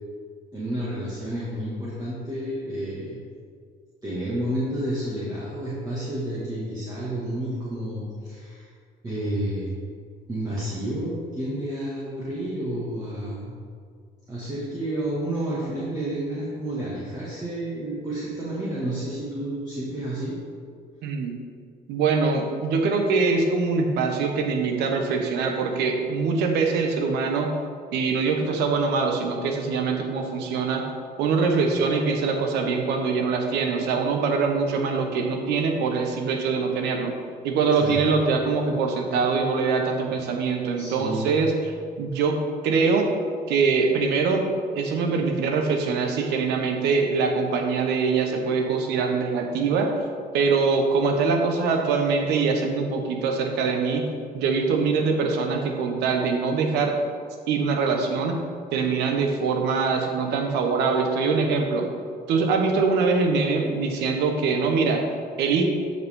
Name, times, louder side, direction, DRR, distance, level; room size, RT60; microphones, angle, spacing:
voice 1, 0.5-3.2 4.0-8.7 9.0-9.8 10.3-13.6 14.3-20.4 37.8-38.0 38.5-38.6 40.8-41.3, right 1 dB, 20° right, -8 dB, 2.2 m, -30 dB
voice 2, 21.0-21.3 21.9-27.5 27.9-30.8 31.2-37.1 37.4-42.4 42.6-43.1 43.5-44.5 44.7-49.9 50.3-54.0 54.3-57.0 57.5-58.4 58.7-61.9 62.3-65.0 65.4-65.7, right 4 dB, 85° right, 3 dB, 1.2 m, -23 dB
13.0 x 5.6 x 3.7 m, 2.1 s
cardioid pair, 110°, 17 cm